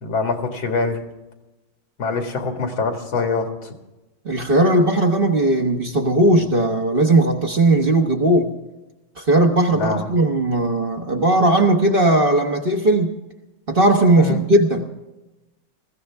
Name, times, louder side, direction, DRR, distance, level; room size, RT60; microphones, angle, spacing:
voice 1, 0.0-1.0 2.0-3.7 9.7-10.1 14.2-14.4, left 4 dB, 75° left, 4 dB, 2.8 m, -24 dB
voice 2, 4.2-8.5 9.2-13.1 13.7-14.9, right 1 dB, 35° right, 2 dB, 1.1 m, -17 dB
20.5 x 15.5 x 3.5 m, 1.0 s
omnidirectional pair, 2.2 m